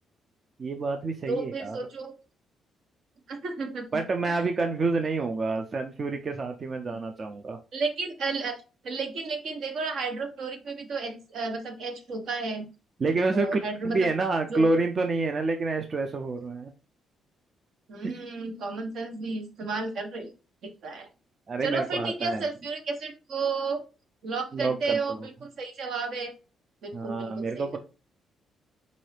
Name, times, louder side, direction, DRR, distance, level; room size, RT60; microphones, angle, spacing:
voice 1, 0.6-1.8 3.9-7.6 13.0-16.7 18.0-18.2 21.5-22.4 24.5-25.0 26.9-27.8, right 3 dB, 40° right, 5 dB, 0.4 m, -28 dB
voice 2, 1.3-2.1 3.3-3.9 4.3-4.4 7.7-8.6 8.8-12.7 13.3-14.0 14.5-14.6 17.9-20.3 20.6-21.1 21.6-23.8 24.2-26.3 26.8-27.8, right 4 dB, 70° right, 5 dB, 0.9 m, -32 dB
3.9 x 2.6 x 3.2 m, 0.32 s
cardioid pair, 90°, 0 cm